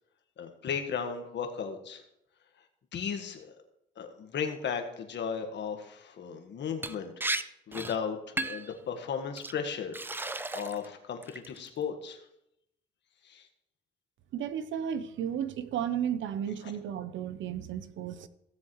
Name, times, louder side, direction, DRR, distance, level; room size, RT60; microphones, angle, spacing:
voice 1, 0.4-2.0 2.9-3.6 4.0-7.4 7.7-12.2 13.2-13.5 16.6-16.7, left 6 dB, 65° left, 6 dB, 1.5 m, -36 dB
Liquid, 6.8-6.9 7.2-7.4 7.7-8.0 8.4-8.7 9.4-9.5 9.9-10.8 11.2-11.7, right 2 dB, 10° right, 0.5 m, -34 dB
voice 2, 14.3-18.3, right 9 dB, 75° right, 13 dB, 0.7 m, -33 dB
16.0 x 7.2 x 3.1 m, 0.81 s
cardioid pair, 90°, 20 cm